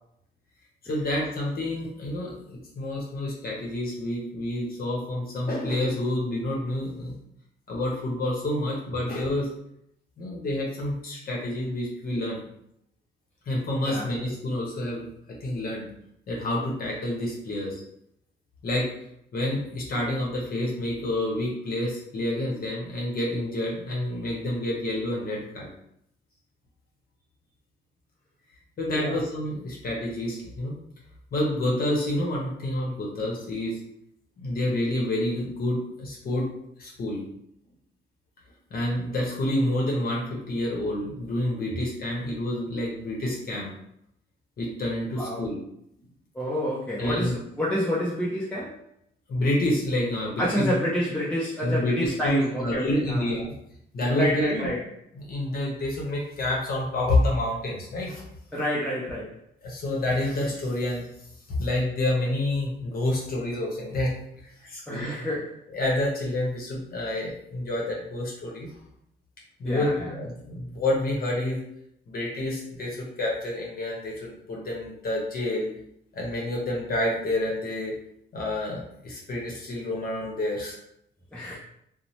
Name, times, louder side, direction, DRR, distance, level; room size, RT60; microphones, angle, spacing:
voice 1, 0.8-7.2 7.7-9.5 10.2-12.4 13.5-15.9 16.3-17.8 18.6-18.9 19.3-25.7 28.8-30.8 31.3-33.8 34.4-36.5 36.8-37.2 38.7-43.7 44.6-45.6 47.0-47.4 49.3-50.8 51.6-53.5 53.9-54.7 55.1-58.2 59.6-61.1 61.5-64.1 64.4-65.1 65.7-68.7 69.6-71.6 72.1-75.7 76.1-77.9 78.3-80.7, left 1 dB, 50° left, -2 dB, 0.8 m, -28 dB
voice 2, 46.3-48.8 50.4-53.3 54.1-54.8 58.5-59.3 64.9-65.6 69.6-70.1 81.3-81.6, equal, 5° left, -6 dB, 0.6 m, -28 dB
2.6 x 2.0 x 3.1 m, 0.75 s
cardioid pair, 90°, 20 cm